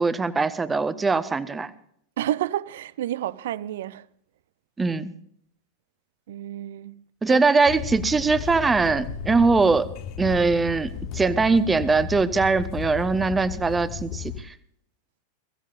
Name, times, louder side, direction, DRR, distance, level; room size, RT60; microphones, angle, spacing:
voice 1, 0.0-1.7 4.8-5.1 7.2-9.9 10.2-14.5, right 4 dB, 15° right, 0.9 m, -21 dB
voice 2, 2.2-4.1 6.3-7.4, right 12 dB, 55° right, 0.5 m, -30 dB
sound 1, 7.7-14.4, left 9 dB, 45° left, 0.7 m, -34 dB
22.5 x 15.5 x 2.5 m
figure-of-eight pair, 90°, 0 cm